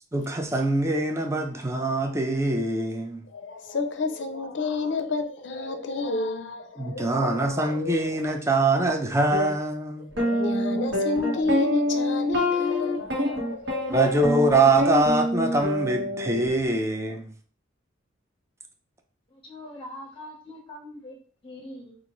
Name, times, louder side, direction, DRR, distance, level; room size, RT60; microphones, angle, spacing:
voice 1, 0.1-3.2 6.8-10.1 13.9-17.2, right 2 dB, 15° right, 0.4 m, -24 dB
voice 2, 3.3-8.9 10.0-14.4, left 3 dB, 65° left, 0.5 m, -31 dB
sound 1, 9.3-9.5 10.2-16.5, left 1 dB, 65° right, 1.2 m, -26 dB
voice 3, 19.3-21.2 21.4-22.0, left 1 dB, 25° left, 0.8 m, -42 dB
5.0 x 2.5 x 3.0 m
head